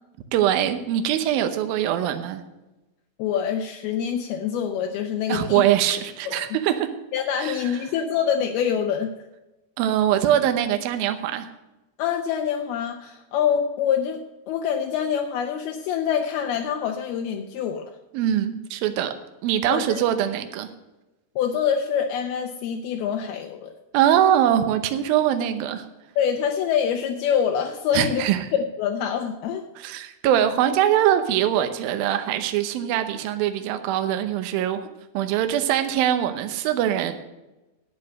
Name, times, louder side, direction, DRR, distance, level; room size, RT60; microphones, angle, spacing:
voice 1, 0.3-2.4 5.3-6.9 7.4-7.7 9.8-11.5 18.1-19.1 19.4-20.7 23.9-25.9 27.9-28.5 29.8-34.9 35.1-37.1, right 11 dB, 85° right, 8 dB, 2.0 m, -22 dB
voice 2, 3.2-5.6 6.3-6.5 7.1-9.1 12.0-17.9 19.6-20.0 21.4-23.7 26.2-29.6, left 8 dB, 85° left, 4 dB, 2.2 m, -25 dB
9.9 x 8.7 x 6.3 m, 1.0 s
omnidirectional pair, 5.4 m